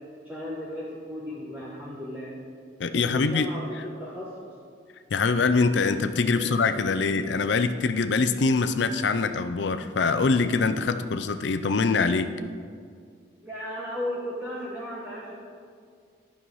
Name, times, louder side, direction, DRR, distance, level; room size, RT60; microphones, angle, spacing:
voice 1, 0.2-2.3 2.9-4.5 6.3-6.5 13.4-15.4, equal, 10° right, -7 dB, 1.2 m, -35 dB
voice 2, 2.8-3.5 5.1-12.3, left 4 dB, 70° left, 11 dB, 0.5 m, -24 dB
11.0 x 5.6 x 6.3 m, 2.1 s
head